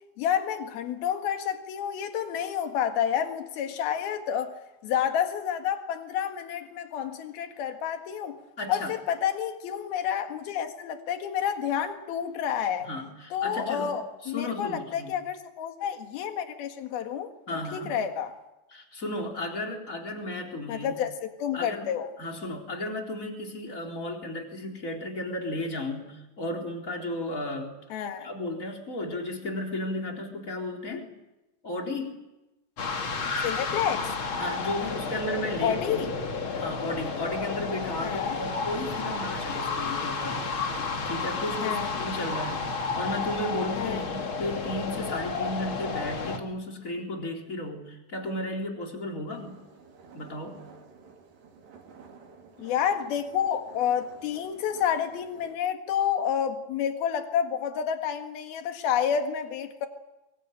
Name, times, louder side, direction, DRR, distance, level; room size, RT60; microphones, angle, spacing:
voice 1, 0.2-4.6 4.8-8.4 8.7-12.9 13.3-18.3 20.7-22.1 27.9-28.3 33.4-34.1 35.6-36.1 38.0-38.4 41.6-41.9 43.8-44.0 52.6-59.9, left 8 dB, 70° left, 3.6 m, -29 dB
voice 2, 8.6-8.9 12.8-14.0 14.2-15.1 17.5-18.0 18.7-21.0 21.5-21.9 22.2-27.8 28.2-31.1 31.6-32.2 34.4-36.1 36.5-40.8 41.1-49.6 50.1-50.7, left 1 dB, 20° left, 3.8 m, -34 dB
sound 1, 32.8-46.4, left 4 dB, 40° left, 2.3 m, -31 dB
sound 2, 49.3-55.6, right 5 dB, 85° right, 5.0 m, -52 dB
24.5 x 22.5 x 8.9 m
omnidirectional pair, 4.6 m